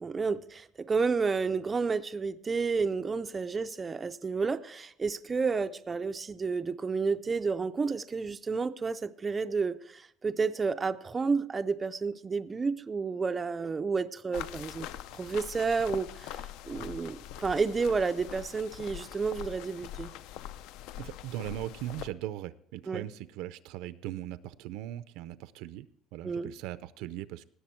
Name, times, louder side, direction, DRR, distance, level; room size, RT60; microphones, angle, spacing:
voice 1, 0.0-20.1 22.9-23.0 26.2-26.5, right 4 dB, 20° right, 0.3 m, -31 dB
sound 1, 14.3-22.1, left 11 dB, 75° left, 0.5 m, -43 dB
voice 2, 21.0-25.9 26.1-27.4, right 13 dB, 75° right, 0.5 m, -39 dB
18.0 x 6.8 x 4.4 m
cardioid pair, 165°, 0 cm